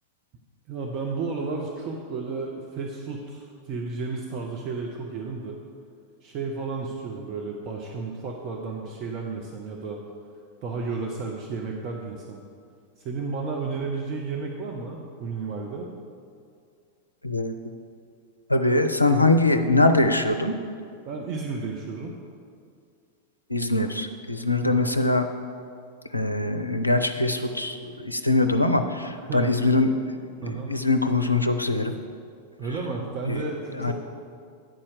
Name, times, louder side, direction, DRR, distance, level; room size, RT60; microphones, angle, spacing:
voice 1, 0.7-5.6 6.2-10.0 10.6-12.4 13.0-15.9 21.0-22.1 24.6-24.9 29.3-29.5 30.4-30.7 32.6-33.9, right 4 dB, 40° right, 0 dB, 0.7 m, -32 dB
voice 2, 17.2-17.7 18.5-20.5 23.5-25.3 26.1-29.9 30.4-31.9 33.3-33.4 33.8-33.9, left 2 dB, 85° left, 7 dB, 0.4 m, -22 dB
9.0 x 4.3 x 6.3 m, 2.3 s
figure-of-eight pair, 90°, 0 cm